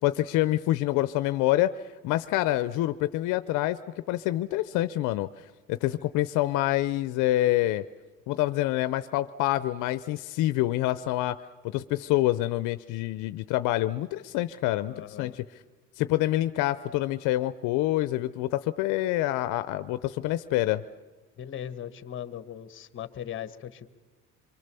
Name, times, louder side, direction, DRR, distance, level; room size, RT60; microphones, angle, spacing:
voice 1, 0.0-1.7 2.0-3.8 4.1-5.3 5.7-7.8 8.3-11.4 11.6-15.4 16.0-20.8, left 15 dB, 80° left, 13 dB, 0.6 m, -26 dB
voice 2, 14.9-15.4 21.4-23.9, left 10 dB, 40° left, 13 dB, 1.2 m, -39 dB
24.5 x 23.5 x 6.9 m, 1.3 s
cardioid pair, 120°, 30 cm